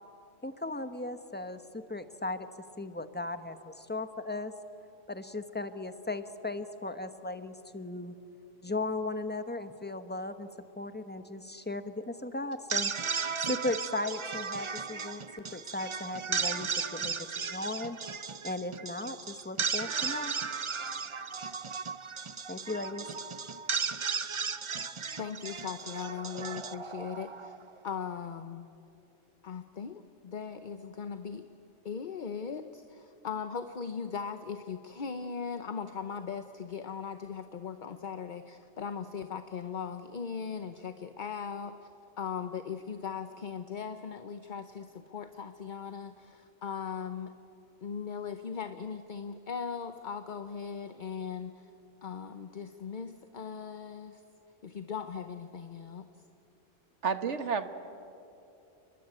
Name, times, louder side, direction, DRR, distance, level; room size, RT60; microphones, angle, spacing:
voice 1, 0.4-2.5 2.8-4.5 5.1-8.1 8.6-10.5 10.8-12.9 13.4-17.1 17.4-18.0 18.4-20.3 22.5-23.1, left 2 dB, 10° left, 9 dB, 1.0 m, -37 dB
sound 1, 12.5-27.8, right 5 dB, 35° right, 0.6 m, -35 dB
voice 2, 25.2-27.6 27.8-28.7 29.4-31.5 31.8-41.9 42.2-47.3 47.8-51.7 52.0-54.2 54.6-56.0, left 6 dB, 45° left, 9 dB, 0.9 m, -39 dB
voice 3, 57.0-57.7, right 6 dB, 70° right, 9 dB, 1.6 m, -30 dB
30.0 x 21.5 x 9.0 m, 2.8 s
omnidirectional pair, 1.3 m